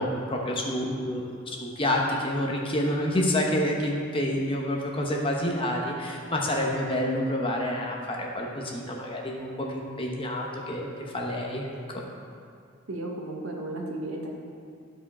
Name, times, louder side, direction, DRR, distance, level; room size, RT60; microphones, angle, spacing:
voice 1, 0.0-12.0, left 1 dB, 25° left, -1 dB, 0.9 m, -28 dB
voice 2, 12.9-14.3, right 1 dB, 65° right, 0 dB, 1.1 m, -34 dB
12.0 x 4.9 x 4.2 m, 2.3 s
head